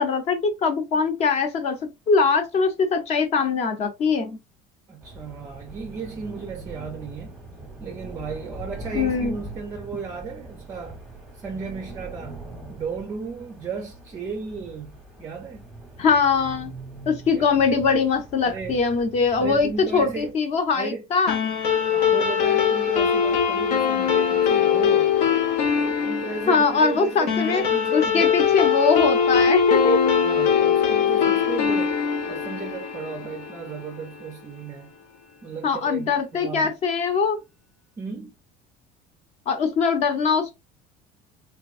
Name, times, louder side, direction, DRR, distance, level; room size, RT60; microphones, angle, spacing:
voice 1, 0.0-4.4 8.9-9.4 16.0-16.7 17.1-21.4 26.5-27.6 27.9-30.2 35.6-37.4 39.5-40.5, left 5 dB, 40° left, 0.8 m, -22 dB
voice 2, 4.9-7.4 7.8-11.0 11.3-15.7 17.3-17.6 18.4-18.8 19.4-20.4 20.7-21.1 21.9-25.2 25.7-28.4 30.2-32.0 32.2-34.9 35.4-36.7 38.0-38.3, right 5 dB, 20° right, 0.4 m, -35 dB
sound 1, 5.0-20.3, right 2 dB, ahead, 0.9 m, -41 dB
sound 2, 21.3-34.0, left 7 dB, 85° left, 0.9 m, -22 dB
3.5 x 2.9 x 2.5 m
cardioid pair, 165°, 17 cm